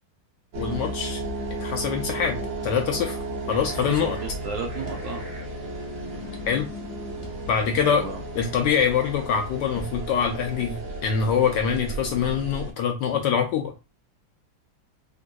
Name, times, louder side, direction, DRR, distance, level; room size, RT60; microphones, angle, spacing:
sound 1, 0.5-12.7, right 2 dB, 55° right, 0.9 m, -34 dB
voice 1, 0.6-1.2 1.5-3.2 3.5-4.2 6.5-6.7 7.5-8.0 8.4-13.7, left 7 dB, 75° left, 3 dB, 1.1 m, -24 dB
sound 2, 3.0-11.4, left 4 dB, 45° left, 0.9 m, -47 dB
voice 2, 3.7-5.2 7.8-8.2, right 3 dB, 75° right, 2 dB, 0.8 m, -34 dB
sound 3, 4.9-5.7 6.0-6.1 7.2-7.9 8.4-8.5 9.8-10.3 10.6-11.2, left 2 dB, 25° left, 0.7 m, -47 dB
3.6 x 2.5 x 2.2 m, 0.28 s
omnidirectional pair, 2.1 m